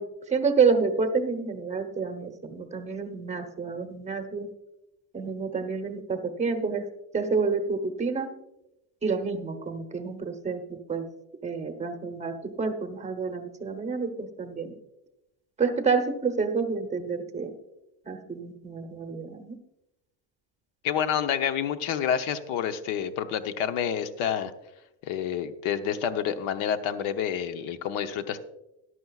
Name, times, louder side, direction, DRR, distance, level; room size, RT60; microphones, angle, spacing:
voice 1, 0.0-4.5 5.1-6.9 7.1-8.3 9.0-11.0 11.4-14.7 15.6-17.5 18.1-19.6, right 5 dB, 15° right, 5 dB, 0.8 m, -28 dB
voice 2, 20.8-24.5 25.0-28.4, left 8 dB, 70° left, 10 dB, 0.9 m, -28 dB
13.5 x 11.0 x 2.4 m, 0.91 s
cardioid pair, 160°, 50 cm